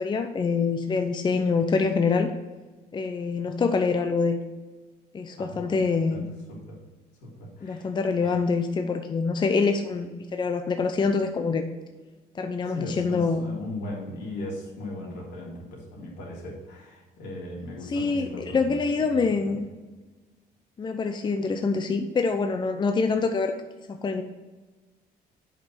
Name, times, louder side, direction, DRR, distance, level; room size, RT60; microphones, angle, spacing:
voice 1, 0.0-2.3 2.9-4.4 5.1-6.3 7.6-11.6 12.3-13.4 17.8-19.7 20.8-23.5 23.9-24.2, left 4 dB, 25° left, 6 dB, 0.6 m, -25 dB
voice 2, 5.4-5.7 6.1-6.2 6.5-6.8 7.2-7.9 8.2-8.4 12.7-19.2 19.4-19.6, left 1 dB, 80° left, -3 dB, 3.1 m, -38 dB
7.6 x 5.4 x 6.1 m, 1.3 s
cardioid pair, 110°, 17 cm